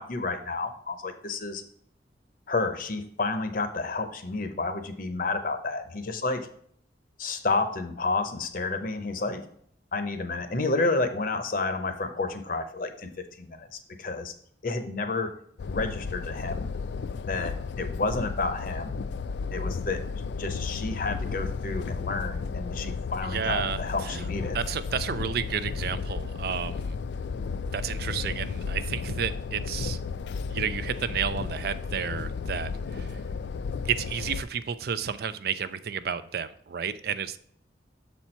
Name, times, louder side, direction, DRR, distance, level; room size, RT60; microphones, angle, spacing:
voice 1, 0.0-1.6 2.5-6.4 7.2-9.4 9.9-13.1 13.4-14.3 14.6-15.3 15.6-16.7 17.3-19.0 19.5-20.0 20.4-24.6, left 3 dB, 50° left, 9 dB, 0.7 m, -30 dB
sound 1, 15.6-34.4, left 5 dB, 70° left, 0.3 m, -33 dB
voice 2, 23.3-24.3 24.5-27.0 27.7-30.0 30.5-33.2 33.8-37.4, right 7 dB, 55° right, 13 dB, 0.4 m, -31 dB
7.1 x 4.3 x 4.4 m, 0.65 s
head